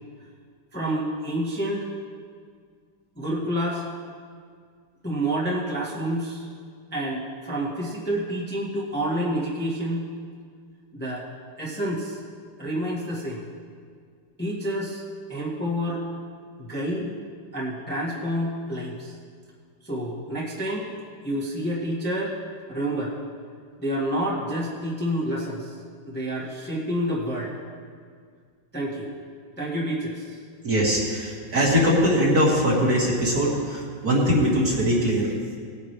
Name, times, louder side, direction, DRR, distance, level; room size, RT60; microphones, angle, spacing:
voice 1, 0.7-1.9 3.2-3.8 5.0-6.5 6.9-10.0 10.9-11.3 11.6-12.2 12.6-13.5 14.4-15.0 15.3-16.0 16.6-17.1 17.5-19.1 19.8-20.9 21.2-22.3 22.7-23.2 23.8-25.8 26.0-27.5 28.7-29.1 29.6-30.4, equal, 5° left, -6 dB, 1.4 m, -28 dB
voice 2, 30.6-35.3, equal, 50° right, -4 dB, 2.6 m, -21 dB
19.5 x 8.7 x 3.4 m, 2.1 s
omnidirectional pair, 2.2 m